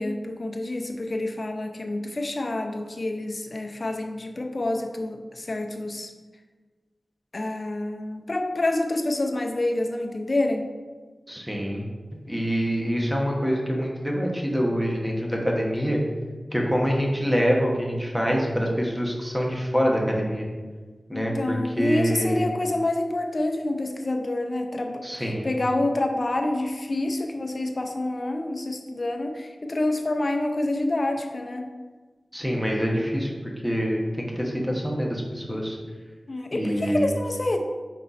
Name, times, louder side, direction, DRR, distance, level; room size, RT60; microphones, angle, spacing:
voice 1, 0.0-6.1 7.3-10.7 21.1-25.0 25.4-31.7 36.3-37.6, left 2 dB, 50° left, 4 dB, 0.7 m, -27 dB
voice 2, 11.3-11.8 12.1-16.0 16.5-20.5 21.1-22.5 25.0-25.5 32.3-35.8 36.5-37.1, equal, 5° right, -1 dB, 1.3 m, -25 dB
5.2 x 4.4 x 4.1 m, 1.4 s
wide cardioid pair, 55°, 0 cm